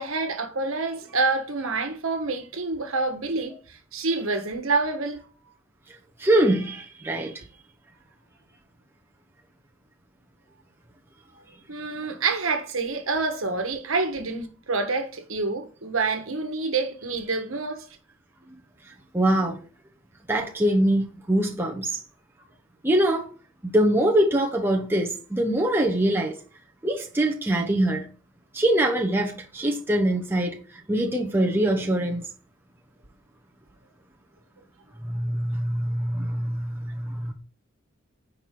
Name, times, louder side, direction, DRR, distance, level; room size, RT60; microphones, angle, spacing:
voice 1, 0.0-3.6 3.9-5.2 11.7-17.8, right 3 dB, 75° right, 1.4 m, -27 dB
voice 2, 6.2-7.4 12.0-12.1 19.1-19.6 20.3-22.0 22.8-23.3 23.6-26.4 26.8-28.1 28.5-32.3 35.0-37.3, right 1 dB, 10° right, 0.9 m, -23 dB
9.7 x 4.7 x 3.7 m
head